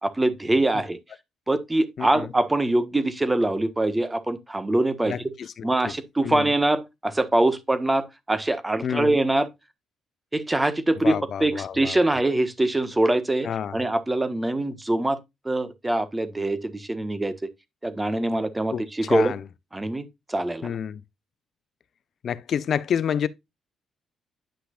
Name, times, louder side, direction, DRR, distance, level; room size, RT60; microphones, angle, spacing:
voice 1, 0.0-1.0 1.5-5.4 5.6-9.5 10.3-15.2 15.4-17.5 17.8-19.3 19.7-20.8, right 2 dB, 15° right, 1.4 m, -24 dB
voice 2, 2.0-2.3 5.0-5.9 6.2-6.6 8.8-9.2 11.0-12.0 13.4-13.8 18.7-19.4 20.6-21.0 22.2-23.3, left 8 dB, 60° left, 0.8 m, -29 dB
10.0 x 5.8 x 2.5 m
cardioid pair, 90°, 0 cm